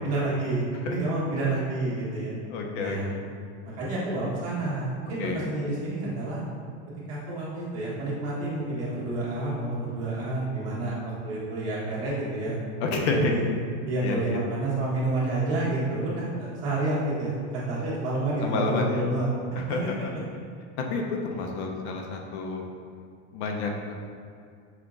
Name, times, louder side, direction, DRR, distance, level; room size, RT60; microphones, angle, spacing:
voice 1, 0.0-2.4 2.8-3.1 3.8-6.4 7.1-10.9 11.2-12.6 12.9-13.4 13.8-19.4 19.7-19.9, right 2 dB, 45° right, -7 dB, 1.5 m, -29 dB
voice 2, 2.5-3.2 5.2-5.4 12.8-13.4 14.0-14.4 18.4-19.0 19.6-19.9 20.8-22.6 23.3-23.9, left 3 dB, 70° left, 1 dB, 0.7 m, -29 dB
5.6 x 2.9 x 2.5 m, 2.4 s
supercardioid pair, 140°, 35 cm